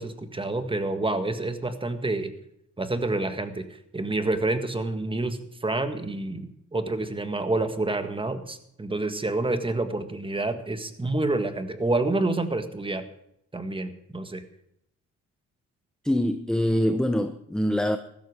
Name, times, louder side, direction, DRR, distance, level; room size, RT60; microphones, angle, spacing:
voice 1, 0.0-2.3 2.8-13.0 13.5-14.4, right 2 dB, 15° right, 1.6 m, -28 dB
voice 2, 16.0-18.0, equal, ahead, 0.7 m, -24 dB
15.0 x 13.0 x 4.8 m
cardioid pair, 90°, 30 cm